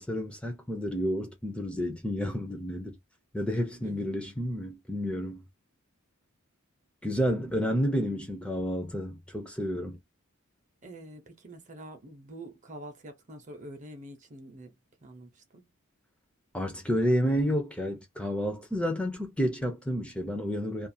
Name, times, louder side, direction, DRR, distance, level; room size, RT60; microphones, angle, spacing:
voice 1, 0.0-3.0 3.3-5.4 7.0-10.0 16.5-20.9, equal, 5° left, 0.5 m, -30 dB
voice 2, 3.8-4.1 10.8-14.7 15.0-15.7, right 1 dB, 35° right, 0.7 m, -46 dB
2.5 x 2.3 x 2.7 m
head